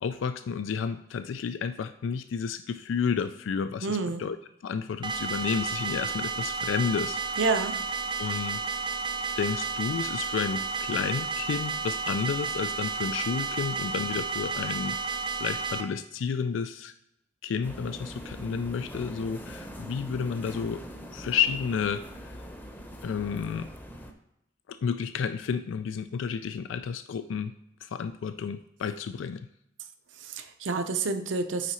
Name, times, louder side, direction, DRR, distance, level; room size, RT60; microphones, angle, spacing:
voice 1, 0.0-4.4 4.6-7.4 8.2-8.6 9.4-15.0 15.4-16.9 17.4-20.8 21.1-22.4 23.0-23.7 24.7-27.5 27.8-29.5, left 6 dB, 75° left, 10 dB, 0.3 m, -31 dB
voice 2, 3.8-4.2 7.4-7.8 30.2-31.7, right 4 dB, 75° right, 8 dB, 0.7 m, -28 dB
sound 1, 5.0-15.8, right 5 dB, 25° right, 0.6 m, -32 dB
sound 2, 17.6-24.1, equal, 10° left, 0.7 m, -42 dB
9.2 x 3.9 x 4.3 m, 0.81 s
head